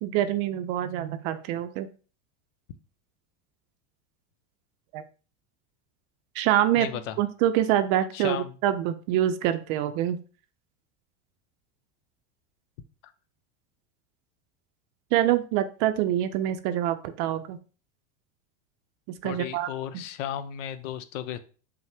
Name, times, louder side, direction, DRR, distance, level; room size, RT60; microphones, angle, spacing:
voice 1, 0.0-1.9 4.9-5.0 6.4-6.9 7.2-10.2 15.1-17.6 19.2-19.7, right 12 dB, 60° right, 10 dB, 0.5 m, -25 dB
voice 2, 6.7-7.2 8.1-8.6 19.2-21.4, left 10 dB, 85° left, 12 dB, 0.6 m, -34 dB
5.4 x 2.1 x 3.3 m, 0.37 s
supercardioid pair, 115°, 37 cm